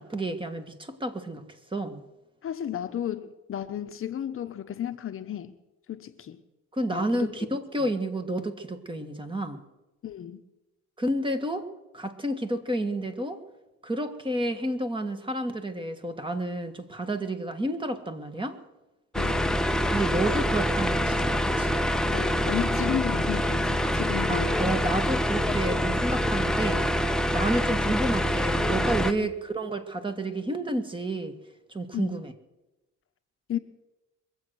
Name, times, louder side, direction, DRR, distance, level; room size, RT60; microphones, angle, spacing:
voice 1, 0.0-1.4 1.7-2.0 6.7-9.6 11.0-11.7 11.9-13.4 13.8-18.6 19.9-21.8 24.3-26.8 27.3-31.3 31.7-32.3, right 1 dB, 15° right, 8 dB, 1.6 m, -30 dB
voice 2, 2.4-5.5 5.9-6.4 6.9-7.3 7.8-7.9 10.0-10.4 19.1-19.6 22.1-24.5 27.5-27.7 29.2-29.3 31.9-32.2 33.5-33.6, left 10 dB, 45° left, 9 dB, 1.0 m, -33 dB
sound 1, 19.1-29.1, equal, ahead, 0.8 m, -25 dB
23.0 x 7.9 x 6.3 m, 1.0 s
cardioid pair, 100°, 30 cm